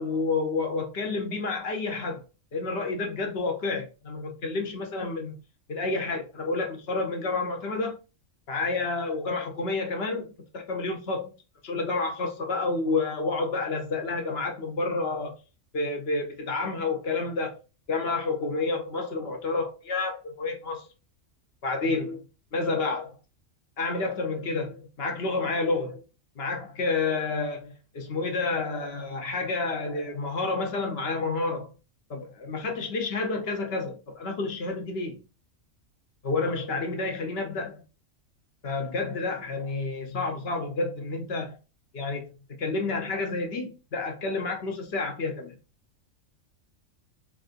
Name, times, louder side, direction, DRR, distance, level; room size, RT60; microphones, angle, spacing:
voice 1, 0.0-2.2 2.5-5.3 5.7-7.9 8.5-11.3 11.6-15.3 15.7-17.6 17.9-20.8 21.6-22.2 22.5-23.1 23.8-26.0 26.4-31.7 32.1-35.2 36.2-37.8 38.6-41.6 41.9-42.3 42.6-45.5, left 3 dB, 55° left, 0.9 m, -29 dB
3.3 x 2.5 x 2.5 m
omnidirectional pair, 1.4 m